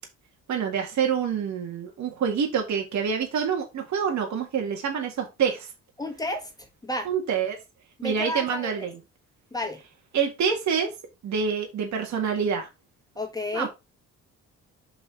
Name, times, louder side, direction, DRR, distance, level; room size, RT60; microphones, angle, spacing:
voice 1, 0.5-5.7 7.1-7.6 8.0-9.0 10.1-10.9 11.2-12.7 13.5-13.7, right 7 dB, 65° right, 2.0 m, -26 dB
voice 2, 6.0-6.5 6.8-7.1 8.0-8.7 9.5-9.8 13.2-13.7, left 1 dB, 10° left, 1.7 m, -31 dB
5.5 x 4.4 x 4.9 m
cardioid pair, 90°, 30 cm